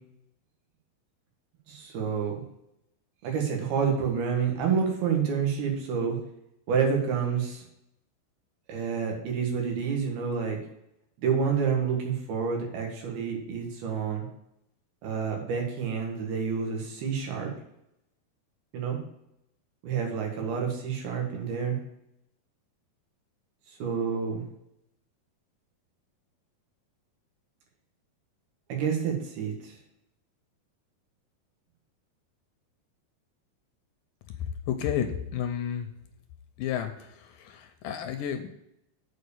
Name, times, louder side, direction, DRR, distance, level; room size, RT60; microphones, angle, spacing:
voice 1, 1.7-2.4 3.2-6.2 6.7-7.6 8.7-10.6 11.2-14.3 15.0-17.5 18.7-19.0 19.8-21.8 23.8-24.4 28.7-29.7, right 6 dB, 90° right, 1 dB, 3.7 m, -28 dB
voice 2, 34.7-35.9 36.6-37.1 37.4-38.5, left 9 dB, 75° left, 7 dB, 2.1 m, -31 dB
8.0 x 4.8 x 6.7 m, 0.81 s
omnidirectional pair, 4.3 m